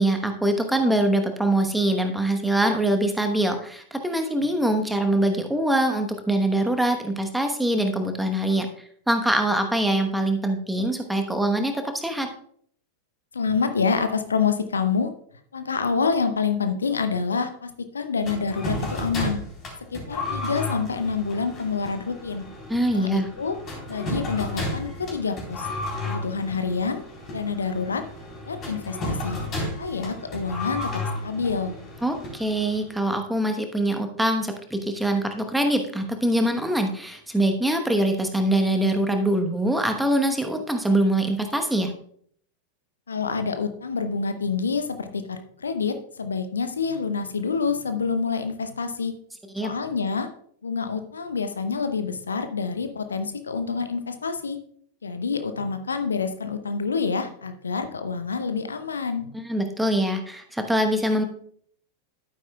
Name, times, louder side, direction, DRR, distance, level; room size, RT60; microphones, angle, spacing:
voice 1, 0.0-8.7 9.1-12.3 22.7-23.3 32.0-41.9 49.5-49.7 59.3-61.2, right 1 dB, 5° right, 5 dB, 1.1 m, -23 dB
voice 2, 13.3-15.1 15.5-19.4 19.9-22.4 22.9-23.6 23.9-25.7 26.0-27.0 27.3-28.0 28.5-29.4 29.8-31.7 43.1-49.1 49.6-50.3 50.6-54.6 55.0-59.3, left 5 dB, 70° left, 9 dB, 0.7 m, -27 dB
sound 1, 18.2-32.9, left 1 dB, 30° left, 3.7 m, -33 dB
11.5 x 9.2 x 2.3 m, 0.63 s
figure-of-eight pair, 90°, 0 cm